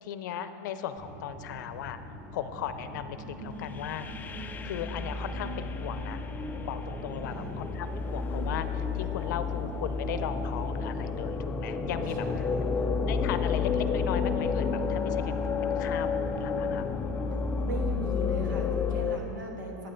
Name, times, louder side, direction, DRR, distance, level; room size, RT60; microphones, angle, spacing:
voice 1, 0.0-4.1 4.6-6.2 6.6-12.3 13.1-16.8, left 9 dB, 75° left, 11 dB, 0.5 m, -37 dB
sound 1, 1.0-19.3, left 1 dB, 20° right, 1.7 m, -42 dB
sound 2, 3.6-19.2, left 5 dB, 20° left, 0.3 m, -31 dB
voice 2, 7.2-7.6 12.1-13.0 17.6-19.9, right 2 dB, 90° right, 1 dB, 1.5 m, -38 dB
sound 3, 10.6-16.4, left 1 dB, 35° right, 2.4 m, -51 dB
9.6 x 8.7 x 3.9 m, 2.9 s
supercardioid pair, 135°, 10 cm